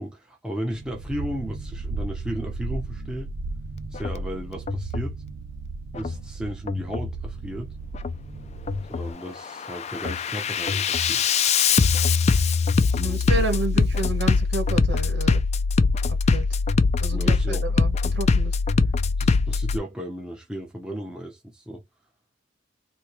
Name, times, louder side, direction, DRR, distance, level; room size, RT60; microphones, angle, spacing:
voice 1, 0.0-3.3 3.9-5.2 5.9-7.7 8.9-11.3 12.9-13.4 17.1-17.7 19.2-21.8, equal, 5° right, 0.8 m, -35 dB
sound 1, 0.7-9.1, right 3 dB, 75° right, 0.8 m, -35 dB
Bass drum, 4.0-4.2 4.7-5.1 5.9-6.2 6.7-7.2 7.9-8.2 8.7-9.2 9.6-19.8, left 4 dB, 35° left, 0.4 m, -22 dB
voice 2, 13.0-15.4 16.1-16.5 17.0-18.6, right 3 dB, 60° right, 2.1 m, -30 dB
4.1 x 2.3 x 3.0 m
head